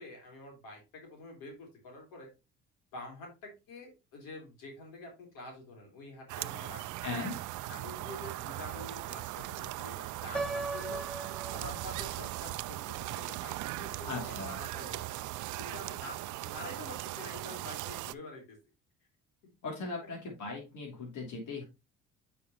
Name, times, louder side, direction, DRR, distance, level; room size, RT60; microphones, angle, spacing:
voice 1, 0.0-2.3 2.9-7.2 7.7-15.1 15.6-16.2 16.4-18.6, left 2 dB, 80° left, 1 dB, 3.6 m, -47 dB
sound 1, 6.3-18.1, right 16 dB, 65° right, 0.5 m, -39 dB
voice 2, 7.0-7.4 14.0-14.5 19.6-21.6, left 3 dB, 65° left, -2 dB, 3.0 m, -38 dB
Piano, 10.3-12.3, right 3 dB, 5° left, 1.6 m, -38 dB
8.6 x 5.2 x 3.0 m, 0.26 s
supercardioid pair, 65°, 33 cm